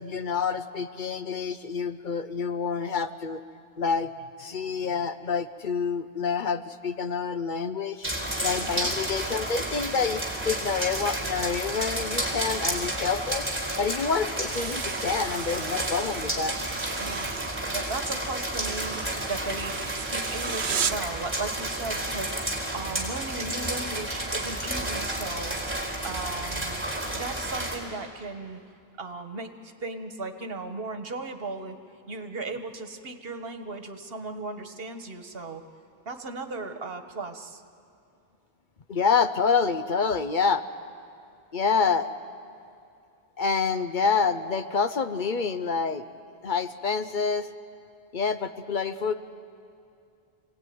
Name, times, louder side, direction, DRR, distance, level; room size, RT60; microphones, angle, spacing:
voice 1, 0.0-3.4 3.8-4.1 4.4-8.1 8.4-13.5 13.8-16.6 38.9-40.6 41.5-42.1 43.4-46.1 46.4-47.5 48.1-49.1, left 5 dB, 50° left, 10 dB, 0.9 m, -27 dB
sound 1, 8.0-27.8, right 1 dB, 10° right, 4.2 m, -31 dB
voice 2, 8.6-8.9 17.0-17.3 17.7-25.6 26.0-26.8 27.1-28.6 29.0-31.8 32.1-35.6 36.0-37.6, right 3 dB, 65° right, 7 dB, 1.5 m, -36 dB
sound 2, 14.4-21.1, right 7 dB, 85° right, 1.1 m, -36 dB
27.5 x 17.5 x 9.5 m, 2.5 s
omnidirectional pair, 1.1 m